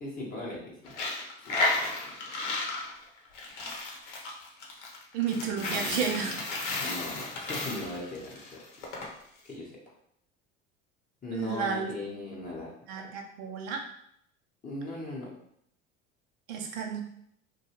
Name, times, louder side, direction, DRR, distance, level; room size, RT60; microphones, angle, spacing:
voice 1, 0.0-0.9 1.5-1.6 2.0-2.1 5.3-6.3 6.8-8.6 9.4-9.8 11.2-12.7 13.0-13.1 14.6-15.3, left 2 dB, 25° left, -4 dB, 0.8 m, -39 dB
Coin (dropping), 0.9-9.1, left 2 dB, 75° left, 0.8 m, -33 dB
voice 2, 5.1-6.4 11.3-12.4 12.9-13.8 16.5-17.0, right 6 dB, 65° right, 2 dB, 0.7 m, -32 dB
2.7 x 2.3 x 2.8 m, 0.71 s
hypercardioid pair, 70°, 36 cm